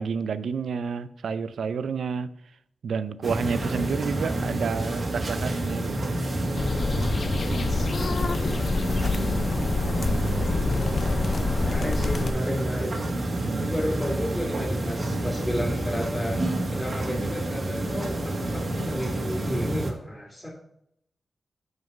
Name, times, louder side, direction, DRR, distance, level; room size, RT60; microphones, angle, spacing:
voice 1, 0.0-2.3 2.8-6.2 10.1-10.7 13.3-13.7, right 5 dB, 85° right, 14 dB, 0.5 m, -30 dB
Roomtone House Ticking, 3.2-19.9, right 1 dB, 45° right, 1.5 m, -29 dB
sound 1, 6.5-12.3, left 4 dB, 50° left, 0.5 m, -27 dB
voice 2, 8.2-9.5 10.4-12.9 13.6-16.4 16.7-20.5, equal, 5° left, -5 dB, 2.1 m, -33 dB
7.1 x 6.4 x 5.3 m, 0.72 s
wide cardioid pair, 125°, 0 cm